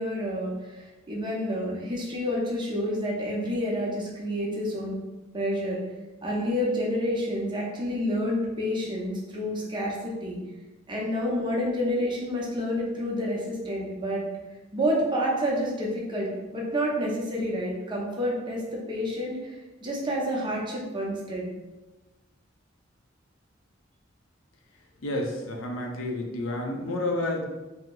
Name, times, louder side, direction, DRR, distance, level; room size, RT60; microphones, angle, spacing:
voice 1, 0.0-5.0 5.3-5.8 6.2-10.4 10.9-14.2 14.7-21.5, equal, 25° right, -3 dB, 0.6 m, -29 dB
voice 2, 25.0-27.4, left 1 dB, 80° left, 1 dB, 0.5 m, -30 dB
2.8 x 2.0 x 3.6 m, 1.1 s
head